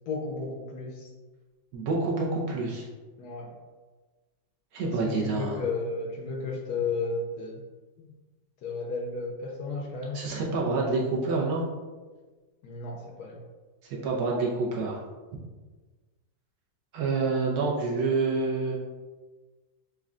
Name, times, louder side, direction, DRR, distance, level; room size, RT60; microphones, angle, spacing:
voice 1, 0.1-1.1 3.2-3.6 4.8-7.6 8.0-8.1 8.6-10.2 12.6-13.4, left 3 dB, 70° left, 0 dB, 1.0 m, -33 dB
voice 2, 1.7-2.9 4.7-5.6 10.1-11.7 14.0-15.0 16.9-18.8, right 3 dB, 70° right, -2 dB, 1.0 m, -27 dB
6.2 x 2.2 x 2.4 m, 1.3 s
omnidirectional pair, 1.9 m